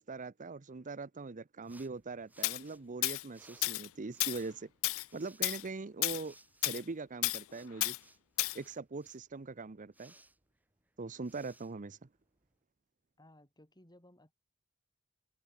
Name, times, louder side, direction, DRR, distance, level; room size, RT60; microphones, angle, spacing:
voice 1, 0.0-4.7 5.1-6.3 6.6-8.0 8.5-10.1 11.0-12.1, right 3 dB, 35° right, 0.7 m, -42 dB
sound 1, 1.6-12.6, right 2 dB, 10° right, 8.0 m, -63 dB
Tools, 2.4-2.6 3.0-3.2 3.6-3.9 4.2-4.4 4.8-5.1 5.4-5.6 6.0-6.2 6.6-6.8 7.2-7.4 7.8-8.0 8.4-8.6, left 20 dB, 65° left, 0.4 m, -32 dB
voice 2, 13.2-14.3, left 1 dB, 20° left, 7.9 m, -60 dB
head